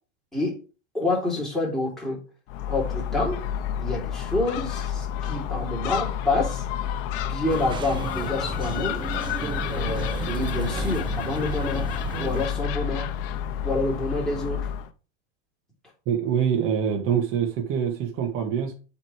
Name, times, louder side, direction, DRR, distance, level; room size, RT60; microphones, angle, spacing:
voice 1, 0.9-2.2 2.7-3.4 3.8-6.6 7.2-9.0 9.7-11.9 12.2-13.1 13.6-14.7, left 2 dB, ahead, 3.5 m, -28 dB
Gull seagull, 2.5-14.9, left 9 dB, 55° left, 0.9 m, -30 dB
sound 1, 7.5-12.5, right 6 dB, 15° right, 0.5 m, -33 dB
voice 2, 16.1-18.7, right 8 dB, 40° right, 1.8 m, -25 dB
7.9 x 4.1 x 4.8 m
supercardioid pair, 140°, 33 cm